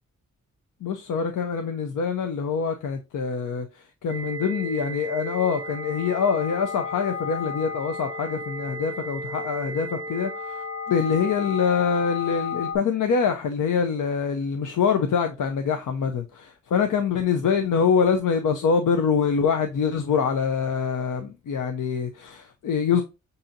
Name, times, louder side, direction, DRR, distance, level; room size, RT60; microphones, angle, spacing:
voice 1, 0.8-3.7 4.0-10.6 10.9-23.0, left 6 dB, 75° left, 0.6 m, -25 dB
sound 1, 4.1-12.8, left 3 dB, 25° left, 1.0 m, -33 dB
7.0 x 2.7 x 2.7 m
cardioid pair, 60°, 32 cm